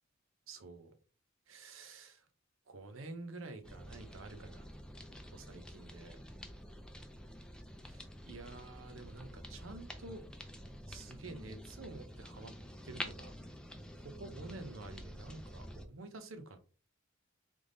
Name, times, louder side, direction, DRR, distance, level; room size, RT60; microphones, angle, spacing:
voice 1, 0.5-0.9 1.5-2.3 2.7-4.9 5.3-6.2 7.8-10.2 10.9-12.5 12.8-13.3 14.0-16.6, right 2 dB, 80° right, 8 dB, 0.9 m, -49 dB
sound 1, 3.6-15.9, equal, 5° left, 0.5 m, -48 dB
3.5 x 3.5 x 3.9 m, 0.38 s
head